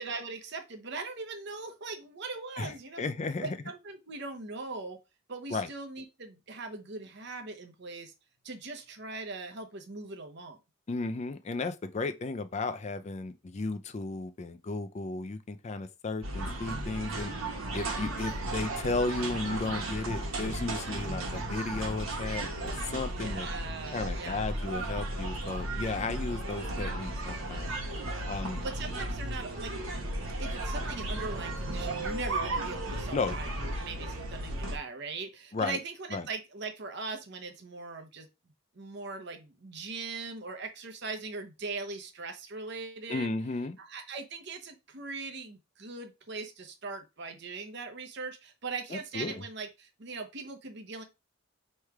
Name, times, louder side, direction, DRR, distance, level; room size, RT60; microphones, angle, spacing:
voice 1, 0.0-3.1 3.4-5.0 5.3-8.1 8.4-10.6 23.1-24.4 28.6-29.9 30.4-38.3 38.7-43.3 43.8-51.0, right 3 dB, 55° right, 0.8 m, -40 dB
voice 2, 2.6-3.6 5.5-5.7 10.9-17.3 17.7-23.5 23.9-27.7 28.3-28.6 33.1-33.4 35.5-35.8 36.1-36.3 43.1-43.8 48.9-49.4, left 3 dB, 30° left, 0.4 m, -34 dB
sound 1, 16.2-34.8, right 1 dB, 75° right, 1.2 m, -35 dB
3.3 x 3.2 x 4.7 m
head